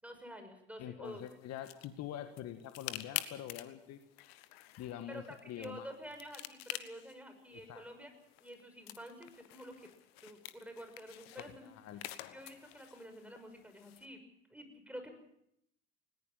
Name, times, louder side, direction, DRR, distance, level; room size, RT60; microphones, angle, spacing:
voice 1, 0.0-1.2 5.1-8.1 8.4-9.9 10.2-11.7 12.3-14.2 14.5-15.1, equal, 5° right, 6 dB, 6.2 m, -49 dB
voice 2, 0.8-4.0 4.8-5.9 7.7-7.8 11.4-12.0, left 11 dB, 50° left, 8 dB, 1.8 m, -45 dB
sound 1, 1.1-14.1, left 15 dB, 70° left, 1.3 m, -48 dB
20.0 x 19.0 x 7.3 m, 0.78 s
figure-of-eight pair, 65°, 32 cm